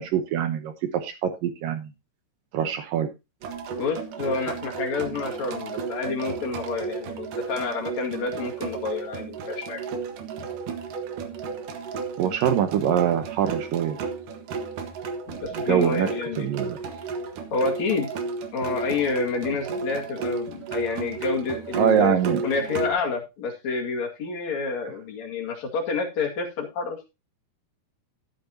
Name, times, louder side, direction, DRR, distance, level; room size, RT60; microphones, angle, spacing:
voice 1, 0.0-1.9 2.5-3.1 12.2-14.0 15.7-16.1 16.4-16.8 21.8-22.4, right 9 dB, 75° right, 8 dB, 2.1 m, -24 dB
sound 1, 3.4-22.9, right 4 dB, 60° right, 2.5 m, -33 dB
voice 2, 3.8-9.8 15.3-16.5 17.5-18.1 18.5-22.2 22.4-27.1, left 4 dB, 45° left, 1 dB, 2.8 m, -29 dB
13.5 x 9.0 x 2.9 m, 0.25 s
omnidirectional pair, 5.2 m